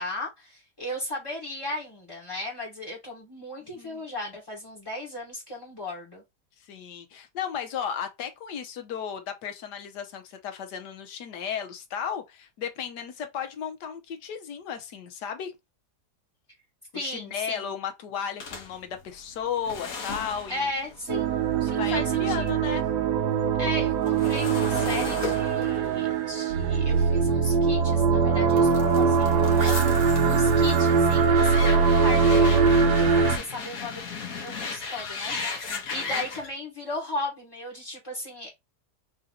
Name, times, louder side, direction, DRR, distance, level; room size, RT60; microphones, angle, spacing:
voice 1, 0.0-6.2 16.9-17.7 20.5-21.3 21.6-22.5 23.6-34.0 34.3-38.5, left 2 dB, 20° left, 1.2 m, -36 dB
voice 2, 3.6-4.1 6.6-15.5 16.9-20.7 21.8-22.8 35.7-36.2, left 8 dB, 80° left, 1.5 m, -34 dB
sound 1, 18.4-22.7 23.0-27.9 28.5-36.5, left 5 dB, 60° left, 1.4 m, -37 dB
sound 2, 21.1-33.4, right 5 dB, 85° right, 1.3 m, -22 dB
3.8 x 2.8 x 3.6 m
omnidirectional pair, 1.8 m